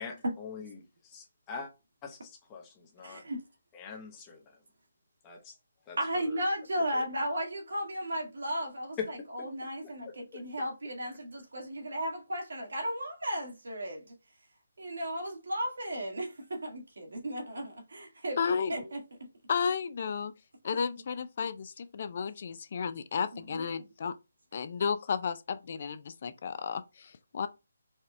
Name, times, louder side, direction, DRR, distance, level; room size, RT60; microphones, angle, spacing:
voice 1, 0.0-1.7 2.0-3.2 3.7-4.6 5.2-5.6 5.9-6.4 6.9-7.0 9.0-9.5 9.8-10.4, left 6 dB, 20° left, 0.8 m, -43 dB
voice 2, 3.0-3.4 6.0-14.1 14.8-19.0 23.5-23.7, equal, 75° right, 1.8 m, -35 dB
voice 3, 18.4-18.7 19.5-20.3 20.6-24.1 24.5-27.5, left 6 dB, 45° left, 0.4 m, -33 dB
4.2 x 2.4 x 3.2 m
hypercardioid pair, 160°, 0 cm